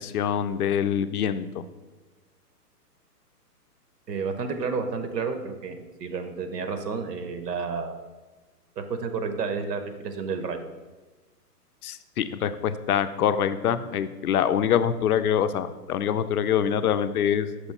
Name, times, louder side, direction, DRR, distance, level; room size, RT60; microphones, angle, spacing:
voice 1, 0.0-1.5 11.8-17.5, left 9 dB, 65° left, 12 dB, 0.5 m, -25 dB
voice 2, 4.1-8.0 8.8-10.6, right 5 dB, 75° right, 7 dB, 1.0 m, -31 dB
6.2 x 3.0 x 5.6 m, 1.2 s
hypercardioid pair, 150°, 48 cm